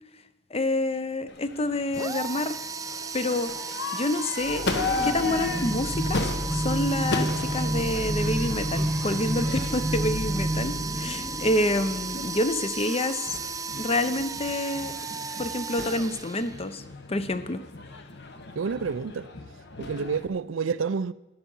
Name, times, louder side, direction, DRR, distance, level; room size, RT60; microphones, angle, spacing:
voice 1, 0.5-2.6 3.1-3.5 3.9-4.7 5.0-6.2 6.5-13.2 13.7-14.9 15.4-16.8 17.1-17.6, left 1 dB, 30° left, 0.7 m, -27 dB
Crowd / Fireworks, 1.3-20.3, left 3 dB, 60° left, 1.2 m, -36 dB
sound 1, 1.9-16.8, right 5 dB, 20° right, 0.5 m, -35 dB
sound 2, 4.4-12.7, equal, 15° left, 1.2 m, -30 dB
voice 2, 18.6-19.3 19.8-21.1, right 5 dB, 85° right, 0.5 m, -29 dB
13.0 x 10.5 x 5.5 m
head